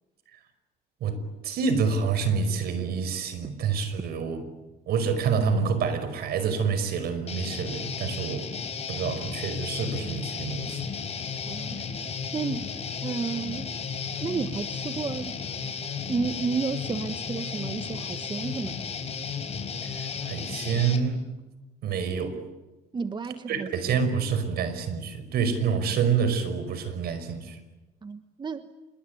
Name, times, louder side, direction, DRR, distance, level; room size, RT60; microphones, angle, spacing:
voice 1, 1.4-4.4 4.9-8.5 8.9-10.9 19.9-21.3 21.8-22.4 23.5-27.6, right 6 dB, 65° right, 11 dB, 5.4 m, -27 dB
Guitar, 7.3-21.0, left 6 dB, 40° left, 4.6 m, -34 dB
voice 2, 11.5-12.0 12.3-12.7 13.0-13.8 14.2-15.4 16.1-18.9 22.9-23.9 28.0-28.7, right 5 dB, 25° right, 10 dB, 1.3 m, -32 dB
27.0 x 23.0 x 9.5 m, 1.1 s
cardioid pair, 110°, 17 cm